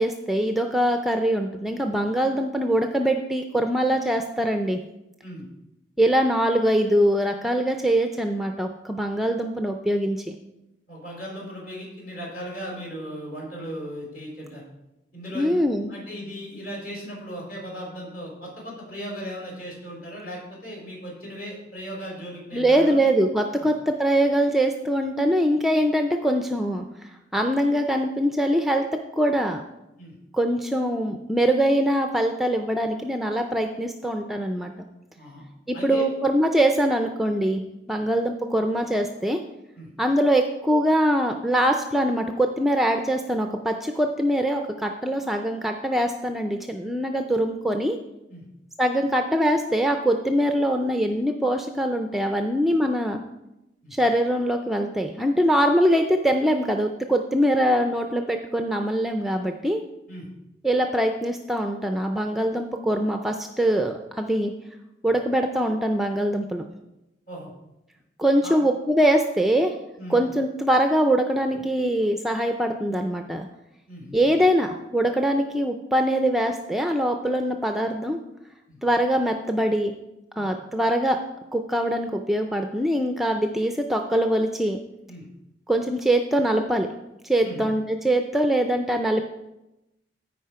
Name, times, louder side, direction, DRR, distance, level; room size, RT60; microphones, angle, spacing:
voice 1, 0.0-4.8 6.0-10.4 15.3-15.9 22.5-26.8 27.3-28.8 29.2-29.6 30.3-34.7 35.7-39.4 40.0-48.0 48.8-53.2 53.9-59.8 60.6-64.5 65.0-66.7 68.2-69.8 70.1-73.5 74.1-78.2 78.8-79.9 80.4-81.2 81.5-84.8 85.7-86.9 87.2-89.2, right 1 dB, ahead, 5 dB, 0.4 m, -23 dB
voice 2, 10.9-14.7 15.1-15.5 15.9-23.1 23.6-23.7 30.0-30.2 35.2-35.4 35.7-36.0 37.9-38.1 39.8-39.9 48.3-48.4 53.8-54.0 60.1-60.3 65.0-65.1 67.3-67.5 68.4-68.6 70.0-70.2 73.9-74.2 78.7-78.8 80.3-80.5 85.1-85.2 87.4-87.7, equal, 50° left, -3 dB, 4.2 m, -37 dB
14.0 x 5.1 x 4.8 m, 0.92 s
head